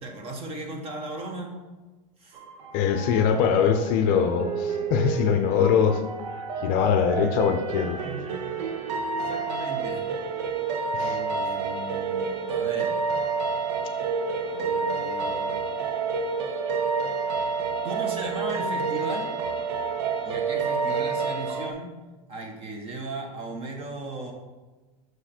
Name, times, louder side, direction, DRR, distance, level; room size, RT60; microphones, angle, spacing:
voice 1, 0.0-1.6 2.2-2.4 8.0-8.4 9.1-10.1 11.0-13.0 14.5-15.6 17.8-19.4 20.2-22.0 22.3-24.3, right 2 dB, 30° right, 3 dB, 1.1 m, -36 dB
sound 1, 2.4-21.7, right 5 dB, 80° right, 0.8 m, -29 dB
voice 2, 2.7-6.0 6.6-8.0 10.9-11.2, left 7 dB, 45° left, 7 dB, 0.6 m, -22 dB
6.4 x 4.8 x 4.3 m, 1.2 s
supercardioid pair, 150°, 21 cm